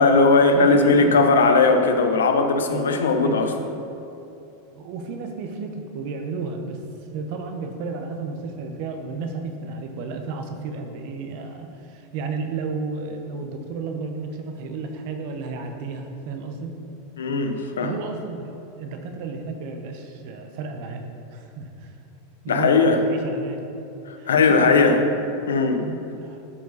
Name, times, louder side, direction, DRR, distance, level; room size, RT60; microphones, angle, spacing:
voice 1, 0.0-3.5 17.2-18.0 22.5-23.0 24.1-25.0 25.5-25.9, left 4 dB, 90° left, 6 dB, 0.8 m, -18 dB
voice 2, 0.5-1.2 2.7-3.4 4.7-6.8 7.1-16.8 17.8-18.5 18.8-21.9 22.4-23.7 24.2-25.0 25.8-26.4, right 4 dB, 60° right, 5 dB, 1.0 m, -32 dB
11.0 x 4.8 x 4.1 m, 2.8 s
hypercardioid pair, 110°, 0 cm